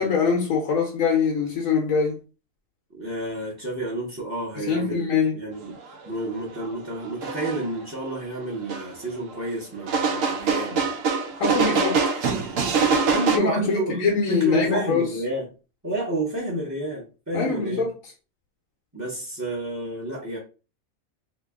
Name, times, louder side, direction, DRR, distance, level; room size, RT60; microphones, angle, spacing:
voice 1, 0.0-2.2 4.6-5.4 11.4-12.3 13.3-13.7 14.0-15.1 17.3-17.9, left 5 dB, 80° left, 1.2 m, -23 dB
voice 2, 2.9-10.9 13.0-15.5 15.8-17.9 18.9-20.4, right 2 dB, 15° right, 0.7 m, -30 dB
sound 1, 6.6-6.7 7.2-7.6 8.7-8.8 9.9-13.4, right 5 dB, 75° right, 1.0 m, -23 dB
2.9 x 2.5 x 3.5 m
omnidirectional pair, 1.4 m